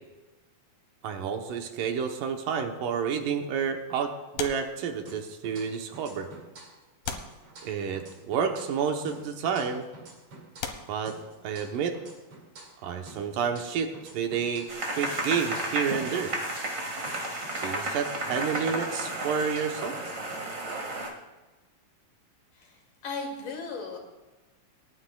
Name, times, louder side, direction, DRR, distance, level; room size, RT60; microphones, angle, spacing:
voice 1, 1.0-6.3 7.6-9.9 10.9-11.2 11.4-12.0 12.8-14.7 15.0-16.3 17.6-20.0, right 7 dB, 80° right, 4 dB, 2.6 m, -30 dB
sound 1, 4.3-5.4 6.2-6.3 7.0-8.1 9.1-9.3 9.9-10.0 10.6-11.8 13.7-15.5 15.8-16.0, left 7 dB, 90° left, 2.8 m, -40 dB
sound 2, 5.1-6.8 7.1-10.8 11.1-14.8 15.1-18.8 19.1-21.1, right 2 dB, 55° right, 3.0 m, -49 dB
sound 3, 14.7-21.1, right 2 dB, 30° right, 1.5 m, -33 dB
voice 2, 22.5-24.0, left 3 dB, 70° left, -1 dB, 3.7 m, -37 dB
27.5 x 9.6 x 2.3 m, 1.2 s
omnidirectional pair, 3.8 m